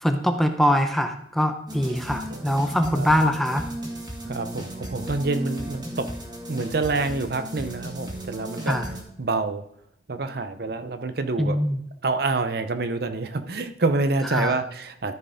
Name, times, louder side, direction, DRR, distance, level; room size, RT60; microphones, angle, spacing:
voice 1, 0.0-3.7 8.7-8.9 11.4-11.8 14.3-14.6, equal, ahead, 6 dB, 0.7 m, -23 dB
sound 1, 1.7-9.0, right 1 dB, 20° right, 1.9 m, -35 dB
voice 2, 2.3-2.6 2.9-3.1 4.3-6.1 6.5-8.8 9.2-9.6 10.1-11.6 12.0-15.1, right 3 dB, 55° right, 9 dB, 0.7 m, -27 dB
13.5 x 4.7 x 5.0 m, 0.75 s
head